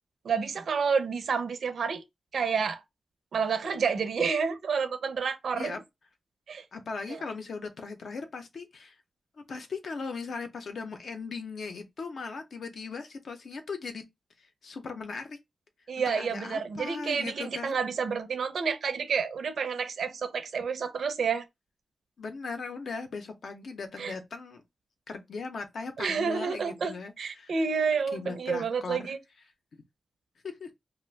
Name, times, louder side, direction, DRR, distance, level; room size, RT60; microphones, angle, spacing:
voice 1, 0.2-2.0 2.3-2.8 3.3-5.8 6.5-6.6 7.1-7.2 15.9-21.4 24.0-24.1 26.0-29.2, right 5 dB, 70° right, 0.5 m, -29 dB
voice 2, 6.7-9.0 9.5-14.0 14.4-15.4 15.9-17.8 22.2-24.6 25.1-27.5 28.1-29.1 30.4-30.7, left 4 dB, 60° left, 0.5 m, -38 dB
2.4 x 2.1 x 3.2 m
wide cardioid pair, 145°, 0 cm